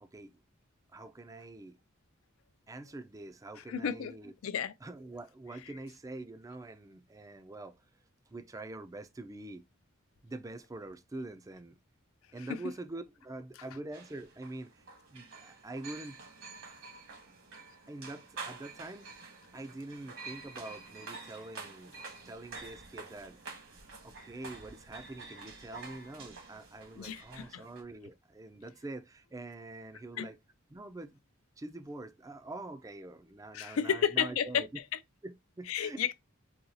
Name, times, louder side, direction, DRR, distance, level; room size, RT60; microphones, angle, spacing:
voice 1, 0.0-0.3 0.9-1.8 2.7-4.3 4.8-7.8 8.3-9.6 10.2-11.8 12.3-14.8 15.1-16.2 17.9-19.1 19.5-21.9 22.2-23.4 24.0-30.4 30.7-31.2 31.6-34.8 35.2-36.0, right 2 dB, 15° right, 0.3 m, -45 dB
voice 2, 3.7-4.1 4.4-4.7 12.5-12.6 27.0-27.6 30.2-30.3 33.5-34.6 35.7-36.1, left 8 dB, 80° left, 0.4 m, -32 dB
sound 1, 13.9-27.8, right 4 dB, 70° right, 1.4 m, -48 dB
4.1 x 2.3 x 2.6 m
head